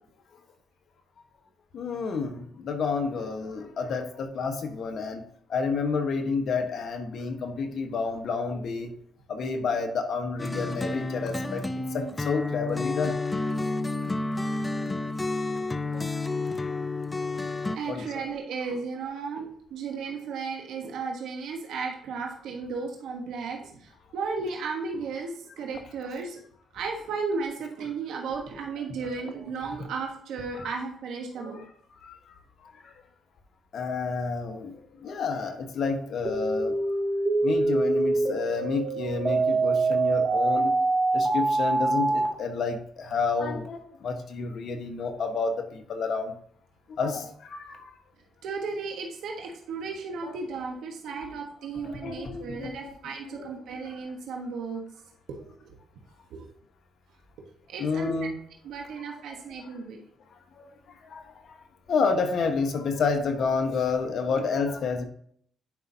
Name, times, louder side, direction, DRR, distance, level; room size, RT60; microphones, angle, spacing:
voice 1, 1.7-5.2 5.5-8.9 9.3-11.6 11.9-13.6 17.9-18.1 30.6-30.7 31.4-31.5 32.0-32.3 32.6-32.9 33.7-34.7 35.0-36.8 37.4-40.8 41.1-46.3 47.0-47.9 50.2-50.4 51.8-52.8 53.4-53.5 57.8-58.3 60.5-60.6 61.0-61.6 61.9-65.0, left 4 dB, 60° left, 5 dB, 1.3 m, -30 dB
sound 1, 10.4-17.8, left 2 dB, 20° left, 0.5 m, -30 dB
voice 2, 15.8-16.2 17.4-17.5 17.7-26.4 26.7-31.6 48.4-54.8 55.3-55.8 56.3-56.4 57.7-58.1 58.6-60.0, right 4 dB, 80° right, 1 dB, 1.3 m, -35 dB
sound 2, 36.2-42.3, right 3 dB, 45° right, 2.2 m, -24 dB
10.5 x 5.4 x 2.8 m, 0.63 s
cardioid pair, 90°, 0 cm